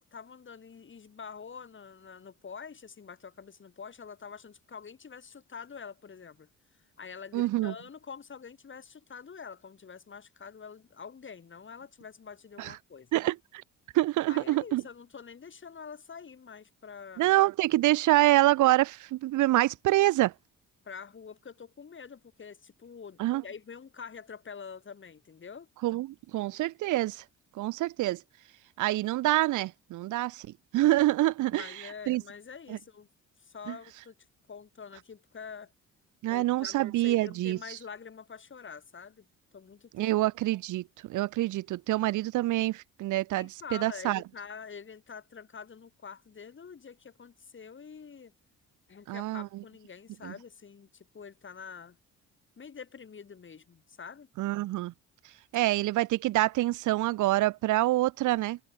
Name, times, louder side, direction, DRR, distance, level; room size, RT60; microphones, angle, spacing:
voice 1, 0.1-6.5 7.0-13.1 14.3-17.3 20.8-25.7 31.5-33.1 33.4-34.1 34.5-35.7 36.3-39.3 39.5-40.2 40.5-40.6 43.4-48.3 48.9-52.0 52.6-54.3, left 6 dB, 40° left, 5.5 m, -46 dB
voice 2, 7.3-7.7 12.6-12.7 13.1-13.6 13.9-14.8 17.2-20.3 23.2-23.4 25.8-27.2 27.6-28.2 28.8-30.5 30.7-31.7 32.1-32.2 32.7-32.8 33.7-33.8 36.2-37.6 40.0-44.2 49.1-49.5 50.2-50.3 54.4-54.9 55.5-58.6, right 16 dB, 85° right, 0.8 m, -26 dB
cardioid pair, 90°, 30 cm